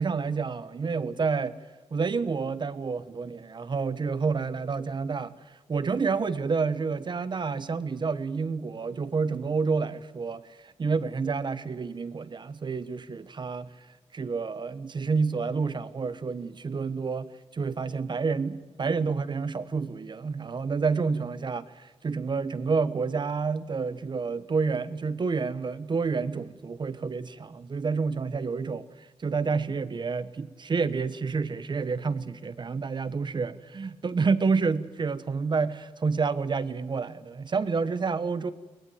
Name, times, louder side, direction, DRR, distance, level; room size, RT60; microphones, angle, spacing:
voice 1, 0.0-1.6 1.9-5.3 5.7-13.7 14.1-28.9 29.2-38.5, right 4 dB, 40° right, 1.1 m, -29 dB
22.0 x 19.0 x 9.3 m
wide cardioid pair, 125°, 12 cm